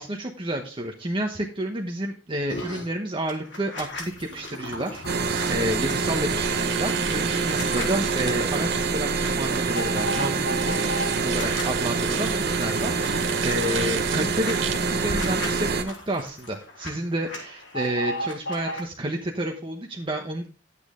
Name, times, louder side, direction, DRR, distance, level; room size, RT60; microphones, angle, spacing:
voice 1, 0.0-20.5, right 1 dB, 25° right, 2 dB, 1.0 m, -30 dB
sound 1, 2.5-2.9 3.3-8.3 8.7-8.8 9.1-11.6 12.0-16.9 17.1-18.8, equal, 70° left, 3.6 m, -35 dB
sound 2, 5.1-15.8, right 4 dB, 55° right, 1.1 m, -26 dB
sound 3, 5.3-15.0, right 8 dB, 75° right, 1.9 m, -36 dB
10.5 x 8.5 x 3.8 m, 0.36 s
head